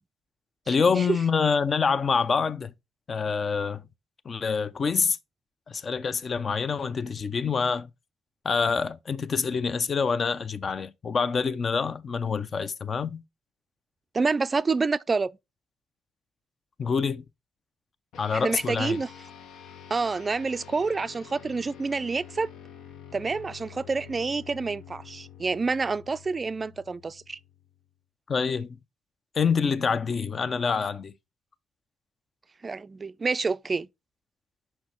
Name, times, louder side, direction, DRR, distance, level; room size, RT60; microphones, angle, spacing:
voice 1, 0.7-2.7 3.1-3.8 4.2-5.2 5.7-7.9 8.4-13.2 16.8-17.2 18.2-19.0 28.3-28.8 29.3-31.1, left 5 dB, 45° left, 0.6 m, -26 dB
voice 2, 14.1-15.3 18.3-19.1 19.9-22.5 23.1-27.4 32.6-33.9, right 4 dB, 30° right, 0.4 m, -28 dB
sound 1, 18.1-27.8, left 9 dB, 80° left, 0.8 m, -48 dB
6.1 x 5.4 x 4.3 m
cardioid pair, 90°, 0 cm